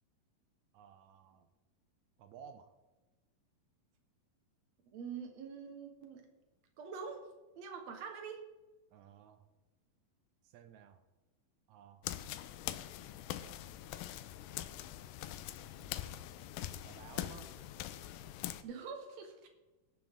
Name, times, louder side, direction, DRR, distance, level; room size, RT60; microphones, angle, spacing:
voice 1, 0.7-1.5 2.2-2.7 8.9-9.5 10.4-11.0 11.7-12.1 13.4-13.9 14.5-14.6 15.6-16.4 16.8-17.7, right 8 dB, 75° right, 8 dB, 1.7 m, -56 dB
voice 2, 4.9-6.3 6.8-8.4 18.6-19.5, right 6 dB, 60° right, 4 dB, 2.0 m, -45 dB
sound 1, 12.0-18.6, left 13 dB, 80° left, 2.1 m, -43 dB
18.0 x 7.4 x 3.6 m, 1.1 s
omnidirectional pair, 4.2 m